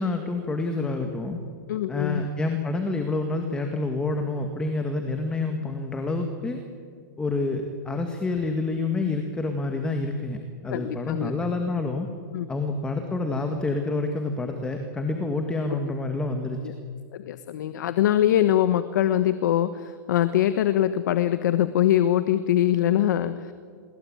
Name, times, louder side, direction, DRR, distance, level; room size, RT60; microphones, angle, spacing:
voice 1, 0.0-1.4 1.9-6.6 7.2-12.1 12.5-16.7, left 3 dB, 10° left, 5 dB, 1.8 m, -28 dB
voice 2, 1.7-2.3 10.7-11.3 12.3-12.5 16.6-16.7 17.1-23.5, left 11 dB, 60° left, 12 dB, 1.2 m, -23 dB
29.0 x 22.0 x 8.9 m, 2.1 s
hypercardioid pair, 155°, 11 cm